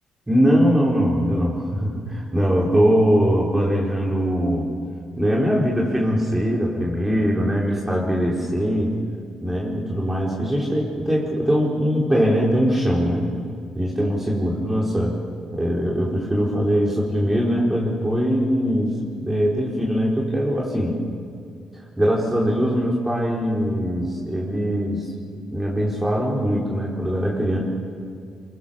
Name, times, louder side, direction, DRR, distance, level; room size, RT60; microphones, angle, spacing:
voice 1, 0.3-4.7 5.2-9.0 9.4-13.3 13.7-15.2 15.5-18.9 19.2-21.0 21.7-25.1 25.5-27.6, equal, 15° right, -4 dB, 4.9 m, -21 dB
23.5 x 23.0 x 7.2 m, 2.2 s
supercardioid pair, 60°, 2 cm